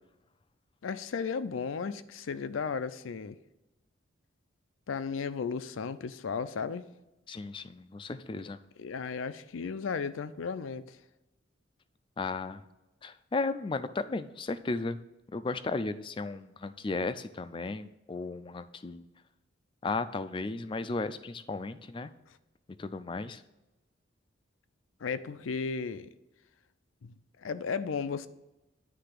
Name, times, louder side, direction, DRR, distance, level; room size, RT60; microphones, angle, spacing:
voice 1, 0.8-3.4 4.9-6.8 8.8-11.0 25.0-26.1 27.0-27.1 27.4-28.3, left 5 dB, 85° left, 13 dB, 0.5 m, -34 dB
voice 2, 7.3-8.6 12.2-12.6 13.0-15.0 15.3-19.0 19.8-22.1 22.8-23.4, left 3 dB, 25° left, 12 dB, 0.3 m, -35 dB
9.7 x 3.3 x 6.7 m, 1.0 s
head